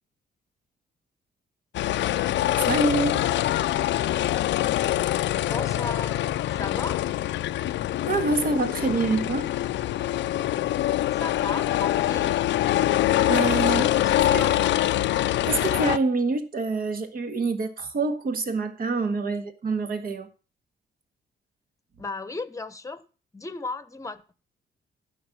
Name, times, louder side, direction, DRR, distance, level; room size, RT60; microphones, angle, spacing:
sound 1, 1.7-16.0, left 13 dB, 85° left, 0.5 m, -24 dB
voice 1, 2.7-3.2 8.1-9.5 13.3-13.9 14.3-14.5 15.4-20.3, right 3 dB, 50° right, 1.7 m, -26 dB
voice 2, 5.5-6.2 6.5-7.0 10.9-12.4 13.7-14.8 22.0-23.0 23.3-24.3, left 3 dB, 15° left, 1.0 m, -35 dB
11.5 x 5.2 x 7.2 m
cardioid pair, 95°, 18 cm